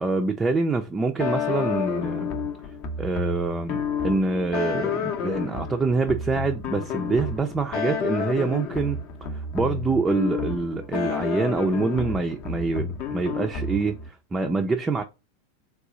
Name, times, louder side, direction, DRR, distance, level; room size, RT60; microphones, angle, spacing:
voice 1, 0.0-2.3 3.0-9.3 9.5-15.0, right 4 dB, 15° right, 0.4 m, -26 dB
sound 1, 1.2-14.1, left 6 dB, 45° left, 0.6 m, -30 dB
3.6 x 2.3 x 3.9 m
figure-of-eight pair, 90°, 0 cm